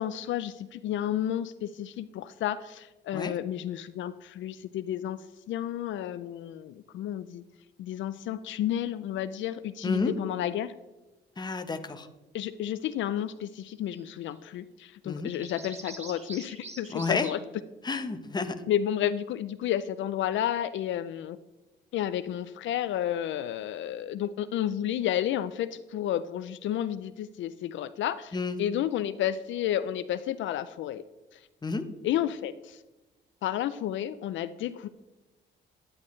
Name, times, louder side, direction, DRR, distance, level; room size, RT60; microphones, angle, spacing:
voice 1, 0.0-7.4 7.8-10.7 12.3-17.4 18.7-21.4 21.9-31.0 31.3-31.5 32.0-32.8 33.4-34.9, left 11 dB, 70° left, 12 dB, 0.4 m, -31 dB
voice 2, 9.8-10.1 11.4-12.1 15.0-15.3 16.9-17.3 17.8-18.6 28.3-28.6 31.6-31.8, left 4 dB, 20° left, 8 dB, 0.9 m, -30 dB
sound 1, 13.7-14.0 14.3-14.4 15.3-17.4, right 3 dB, 35° right, 1.3 m, -44 dB
10.5 x 9.8 x 3.2 m, 1.1 s
cardioid pair, 90°, 20 cm